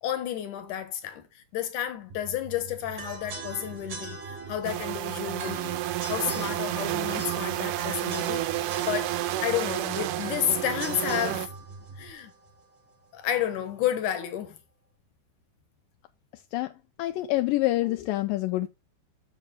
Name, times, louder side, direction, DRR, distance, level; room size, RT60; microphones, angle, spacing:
voice 1, 0.0-5.8 6.1-9.2 9.4-11.5 12.0-12.3 13.1-14.6, left 10 dB, 65° left, 2.3 m, -31 dB
sound 1, 2.1-12.1, right 3 dB, 65° right, 2.4 m, -45 dB
sound 2, 3.0-13.0, right 4 dB, 40° right, 1.7 m, -42 dB
sound 3, 4.6-11.5, right 14 dB, 80° right, 1.9 m, -30 dB
voice 2, 16.3-18.7, left 17 dB, 85° left, 2.0 m, -27 dB
6.9 x 6.9 x 5.1 m
omnidirectional pair, 4.5 m